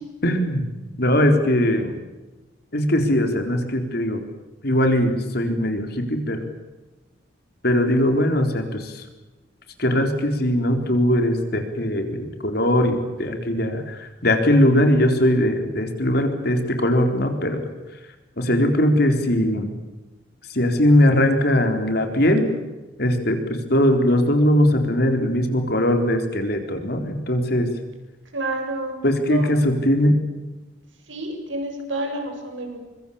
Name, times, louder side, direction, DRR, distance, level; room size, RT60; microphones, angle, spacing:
voice 1, 0.2-0.7 1.0-1.9 2.7-4.2 4.6-6.4 7.6-9.0 9.8-17.6 18.4-19.7 20.5-22.5 23.0-27.7 29.0-30.2, left 1 dB, 55° left, 5 dB, 4.1 m, -20 dB
voice 2, 28.3-29.0 29.3-29.5 31.1-32.8, right 2 dB, 80° right, 3 dB, 7.6 m, -29 dB
25.0 x 24.0 x 7.3 m, 1.1 s
head